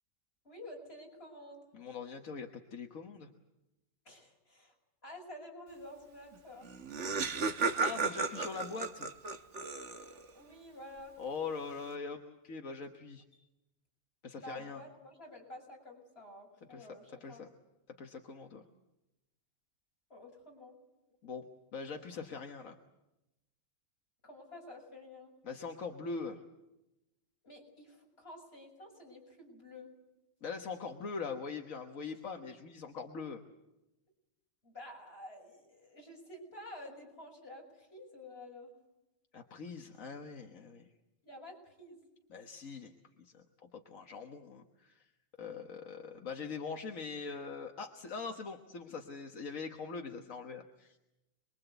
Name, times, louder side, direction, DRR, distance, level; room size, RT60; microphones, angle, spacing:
voice 1, 0.4-1.6 4.1-4.7 5.0-6.7 10.3-11.1 14.4-17.4 20.1-20.8 24.2-25.3 27.4-29.9 34.6-38.7 41.2-42.0, left 1 dB, 50° left, 0 dB, 7.0 m, -50 dB
voice 2, 1.7-3.3 7.8-9.1 11.2-13.4 14.2-14.8 16.7-16.9 17.2-17.5 17.9-18.6 21.2-22.8 25.4-26.4 30.4-33.4 39.3-40.9 42.3-42.9 43.2-45.1 45.4-51.0, left 5 dB, 80° left, 3 dB, 1.8 m, -42 dB
Laughter, 6.4-6.5 6.6-10.3, right 4 dB, 60° right, 1.6 m, -34 dB
27.5 x 22.0 x 8.1 m, 0.95 s
omnidirectional pair, 1.4 m